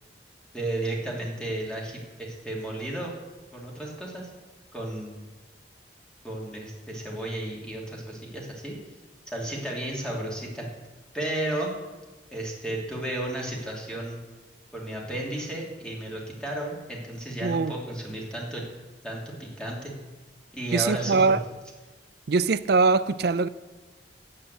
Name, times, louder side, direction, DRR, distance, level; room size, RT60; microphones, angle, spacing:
voice 1, 0.5-3.1 3.5-4.3 4.7-5.2 6.2-8.8 9.3-10.7 11.1-11.7 12.3-14.2 14.7-18.6 19.0-19.9 20.5-21.4, right 1 dB, 5° left, 2.9 m, -33 dB
voice 2, 17.4-17.7 20.7-21.4 22.3-23.5, right 4 dB, 60° right, 0.5 m, -22 dB
9.7 x 8.7 x 7.8 m
head